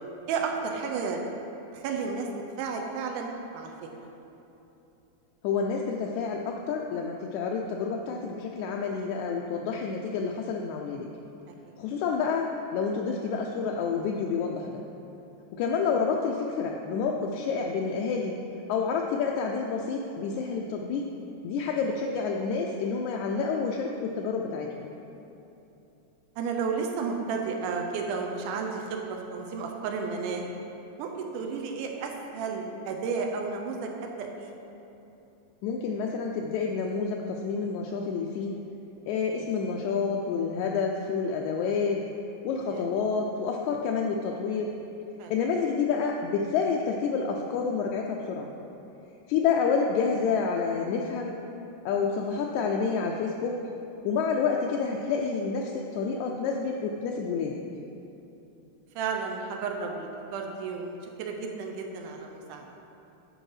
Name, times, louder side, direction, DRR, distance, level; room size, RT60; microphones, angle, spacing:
voice 1, 0.3-1.2 1.7-2.3 2.6-3.3 3.5-3.7 11.5-11.8 26.4-30.5 31.0-34.5 42.7-42.9 45.2-45.3 59.0-62.7, right 5 dB, 90° right, 2 dB, 2.2 m, -32 dB
voice 2, 5.4-11.1 11.8-14.8 15.5-18.4 18.7-21.0 21.4-24.8 35.6-38.5 39.1-42.0 42.4-44.8 45.3-48.5 49.3-51.4 51.9-53.6 54.0-57.6, left 5 dB, 80° left, 0 dB, 1.8 m, -29 dB
8.9 x 5.4 x 4.8 m, 2.9 s
omnidirectional pair, 3.5 m